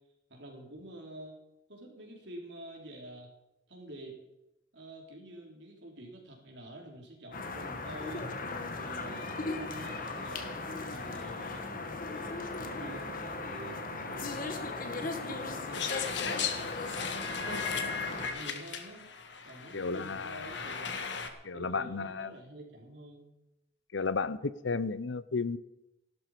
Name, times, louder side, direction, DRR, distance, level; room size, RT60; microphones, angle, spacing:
voice 1, 0.3-1.4 1.7-3.3 3.7-4.2 4.7-8.2 8.8-11.7 12.1-19.1 19.4-21.0 21.5-23.3, right 1 dB, 70° right, 0 dB, 4.1 m, -48 dB
sound 1, 7.3-18.3, left 3 dB, 50° left, 1.7 m, -37 dB
sound 2, 15.7-21.3, left 6 dB, 75° left, 1.6 m, -37 dB
voice 2, 19.7-20.5 21.4-22.3 23.9-25.6, left 4 dB, 90° left, 16 dB, 0.7 m, -33 dB
16.5 x 12.5 x 5.2 m, 0.92 s
head